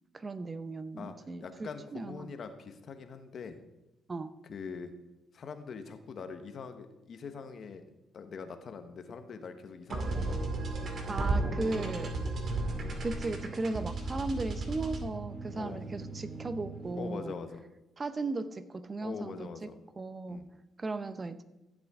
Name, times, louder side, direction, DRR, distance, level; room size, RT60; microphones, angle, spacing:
voice 1, 0.1-2.3 4.1-4.3 11.1-12.1 13.0-17.4 18.0-19.7 20.0-20.5 20.8-21.4, right 3 dB, 30° right, 13 dB, 0.7 m, -36 dB
voice 2, 1.0-3.6 4.5-4.9 5.3-7.8 8.1-10.4 11.4-12.1 15.5-15.9 17.0-17.6 19.0-19.8 20.3-20.5, left 5 dB, 55° left, 8 dB, 1.2 m, -43 dB
sound 1, 9.9-17.2, right 2 dB, 50° right, 2.1 m, -35 dB
14.5 x 7.9 x 3.7 m, 0.98 s
cardioid pair, 90°, 0 cm